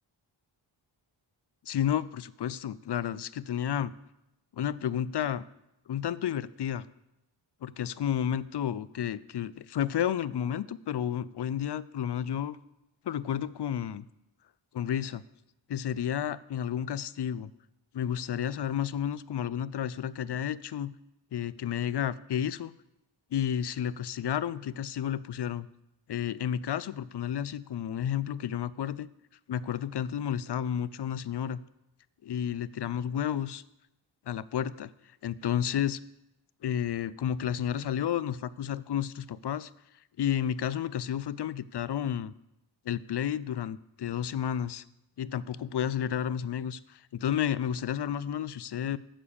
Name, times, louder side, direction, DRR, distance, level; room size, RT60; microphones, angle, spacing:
voice 1, 1.7-3.9 4.5-5.4 5.9-6.9 7.6-12.6 13.0-14.0 14.7-15.2 15.7-17.5 17.9-20.9 21.3-22.7 23.3-25.7 26.1-29.1 29.5-31.6 32.2-33.6 34.3-34.9 35.2-36.0 36.6-39.7 40.2-42.3 42.9-44.8 45.2-49.0, left 9 dB, 60° left, 18 dB, 0.5 m, -31 dB
9.0 x 6.7 x 7.1 m, 0.89 s
wide cardioid pair, 70°, 48 cm